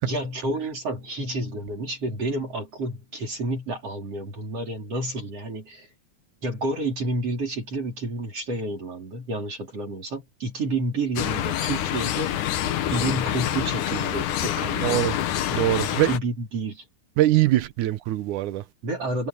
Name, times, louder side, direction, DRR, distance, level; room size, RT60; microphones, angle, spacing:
voice 1, 0.0-5.9 6.4-12.3 12.9-15.2 15.9-16.8 18.8-19.3, right 2 dB, 50° right, 5.1 m, -30 dB
sound 1, 11.2-16.2, left 11 dB, 85° left, 2.7 m, -26 dB
voice 2, 14.8-15.1 15.5-16.1 17.2-18.6, right 15 dB, 85° right, 2.4 m, -22 dB
omnidirectional pair, 3.5 m